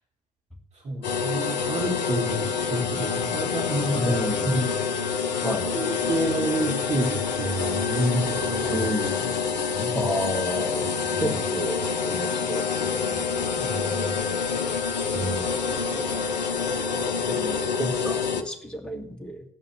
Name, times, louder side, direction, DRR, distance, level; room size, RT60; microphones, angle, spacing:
voice 1, 0.8-4.7 5.7-8.9 9.7-10.1 11.0-11.3 13.6-14.3 15.1-15.5, right 1 dB, 30° right, 0 dB, 2.8 m, -29 dB
sound 1, 1.0-18.4, left 6 dB, 80° left, 0.8 m, -27 dB
voice 2, 3.9-4.6 5.4-5.8 8.7-9.3 9.9-10.9 11.2-13.7 15.9-16.1 17.3-19.4, equal, 5° left, 1 dB, 2.0 m, -31 dB
14.5 x 5.5 x 6.6 m, 0.71 s
figure-of-eight pair, 65°, 21 cm